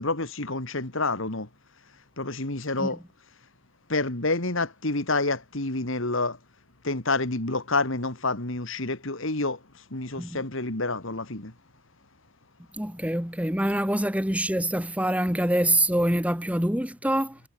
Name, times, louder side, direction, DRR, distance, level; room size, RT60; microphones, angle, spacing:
voice 1, 0.0-1.5 2.2-3.0 3.9-6.4 6.8-9.6 9.9-11.5, left 2 dB, 60° left, 2.4 m, -28 dB
voice 2, 12.7-17.4, right 1 dB, 5° right, 1.8 m, -25 dB
head